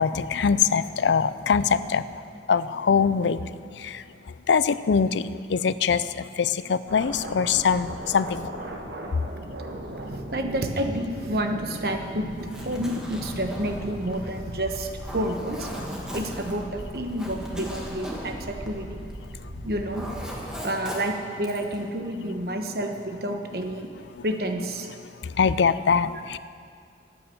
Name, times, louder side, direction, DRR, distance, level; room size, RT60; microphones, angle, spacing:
voice 1, 0.0-2.0 2.5-3.4 3.8-4.0 4.5-8.5 14.2-14.3 24.0-24.2 25.0-26.4, left 6 dB, 90° left, 15 dB, 0.5 m, -23 dB
sound 1, 6.9-20.5, right 1 dB, 80° right, 1.4 m, -38 dB
voice 2, 10.1-12.3 12.6-15.7 16.1-19.1 19.6-20.1 20.6-23.9 24.2-24.9, right 1 dB, 60° right, 5 dB, 1.1 m, -29 dB
Zipper (clothing), 12.3-19.4 19.7-21.8, equal, 5° right, 1.5 m, -38 dB
14.0 x 9.3 x 7.1 m, 2.2 s
head